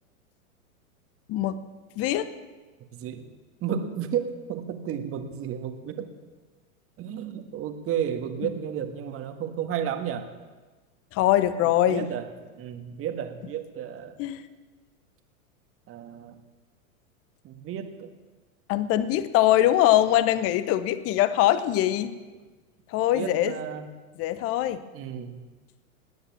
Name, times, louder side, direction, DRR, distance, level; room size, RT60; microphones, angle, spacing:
voice 1, 1.3-1.6 2.0-2.3 11.1-12.1 14.2-14.4 18.7-22.1 22.9-23.6 24.2-24.8, left 13 dB, 35° left, 14 dB, 0.9 m, -22 dB
voice 2, 2.9-3.3 3.6-6.1 7.0-10.3 11.9-12.3 12.6-14.2 15.9-16.3 17.4-18.1 23.1-23.9 24.9-25.4, right 8 dB, 30° right, 8 dB, 1.6 m, -32 dB
19.0 x 9.2 x 7.3 m, 1.3 s
hypercardioid pair, 115°, 43 cm